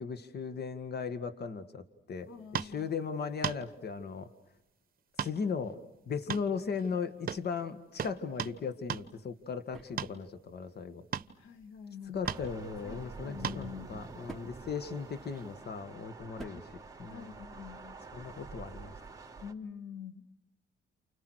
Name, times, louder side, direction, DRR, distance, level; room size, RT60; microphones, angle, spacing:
voice 1, 0.0-4.3 5.2-5.8 6.1-11.1 12.1-17.3 18.1-18.9, left 5 dB, 55° left, 10 dB, 2.1 m, -37 dB
voice 2, 2.3-2.9 11.4-12.2 12.8-14.0 17.1-18.0 19.4-20.3, left 7 dB, 85° left, 7 dB, 2.2 m, -45 dB
sound 1, 2.5-2.8 3.4-3.6 5.2-5.4 5.7-5.8 6.3-7.0 7.3-7.5 8.0-8.6 8.9-9.1 10.0-10.2 11.1-11.4 12.3-12.5 13.4-13.7 15.3-15.4, right 8 dB, 45° right, 1.1 m, -36 dB
sound 2, 8.9-17.7, right 2 dB, ahead, 3.6 m, -53 dB
sound 3, 12.3-19.5, right 4 dB, 15° right, 3.2 m, -47 dB
29.5 x 29.0 x 6.6 m, 0.82 s
cardioid pair, 90°, 20 cm